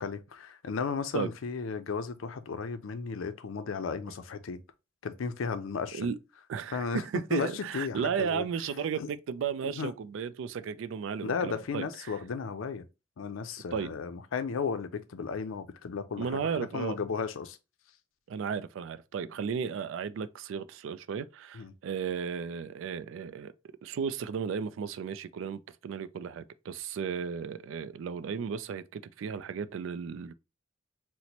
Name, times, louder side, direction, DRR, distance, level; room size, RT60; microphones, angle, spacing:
voice 1, 0.0-4.6 5.0-6.1 6.7-7.0 7.3-8.5 8.9-9.1 9.7-9.9 11.2-12.9 13.2-17.6 21.5-21.7, left 5 dB, 85° left, 0.4 m, -34 dB
voice 2, 6.5-6.9 7.1-12.1 13.7-13.9 16.2-17.0 18.3-23.5 23.8-30.3, right 6 dB, 70° right, 0.3 m, -34 dB
4.1 x 2.1 x 2.9 m
head